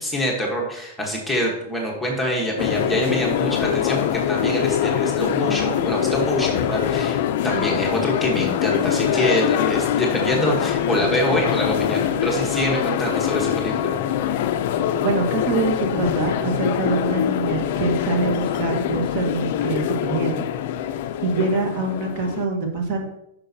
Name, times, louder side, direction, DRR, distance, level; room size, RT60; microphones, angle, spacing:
voice 1, 0.0-7.2 7.4-14.0, equal, ahead, -3 dB, 1.1 m, -25 dB
sound 1, 2.6-22.5, left 10 dB, 45° left, 0.4 m, -23 dB
voice 2, 15.0-20.4 21.2-23.0, right 3 dB, 35° right, 2 dB, 1.3 m, -24 dB
8.6 x 5.9 x 2.7 m, 0.82 s
supercardioid pair, 170°, 0 cm